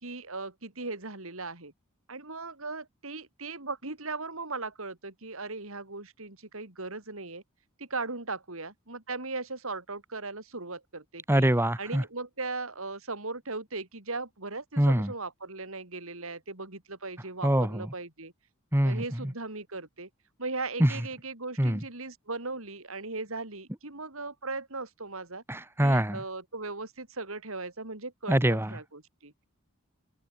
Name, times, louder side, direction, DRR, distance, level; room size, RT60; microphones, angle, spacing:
voice 1, 0.0-1.7 2.1-7.4 7.8-11.5 11.8-18.3 18.8-20.1 20.4-25.4 25.8-29.3, right 3 dB, 70° right, 3.8 m, -38 dB
voice 2, 11.3-12.0 14.8-15.1 17.4-17.9 18.7-19.0 20.8-20.9 21.6-21.8 25.5-26.2 28.3-28.7, right 1 dB, 10° right, 1.5 m, -24 dB
open air
head